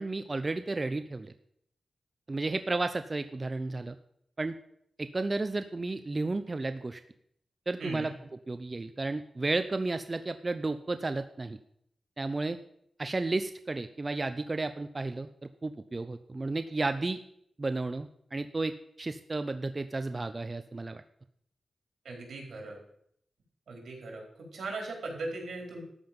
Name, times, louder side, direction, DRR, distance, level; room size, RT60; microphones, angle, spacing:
voice 1, 0.0-1.3 2.3-4.0 4.4-4.5 5.0-7.0 7.7-8.1 8.5-11.6 12.2-12.6 13.0-15.3 15.6-17.2 17.6-21.0, right 3 dB, 35° right, 10 dB, 0.7 m, -32 dB
voice 2, 22.0-22.8 23.7-24.2 24.5-25.8, right 2 dB, 90° right, 0 dB, 4.4 m, -38 dB
13.0 x 5.7 x 8.8 m, 0.71 s
cardioid pair, 75°, 0 cm